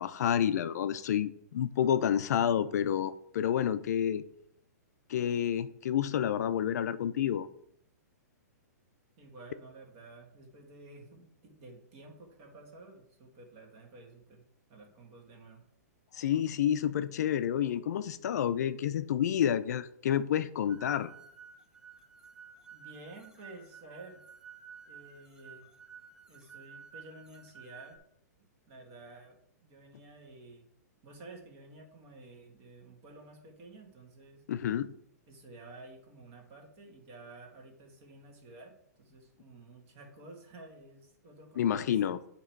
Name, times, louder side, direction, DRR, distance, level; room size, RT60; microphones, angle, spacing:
voice 1, 0.0-4.2 5.1-7.5 16.2-21.1 34.5-34.9 41.6-42.2, left 9 dB, 70° left, 0.4 m, -29 dB
voice 2, 9.2-14.4 14.7-15.6 22.7-24.2 24.8-25.7 26.3-28.0 28.7-30.7 31.0-34.4 35.3-42.3, right 2 dB, 40° right, 1.6 m, -52 dB
sound 1, 20.7-28.0, right 7 dB, 5° right, 0.4 m, -52 dB
8.5 x 3.0 x 4.5 m
hypercardioid pair, 145°, 9 cm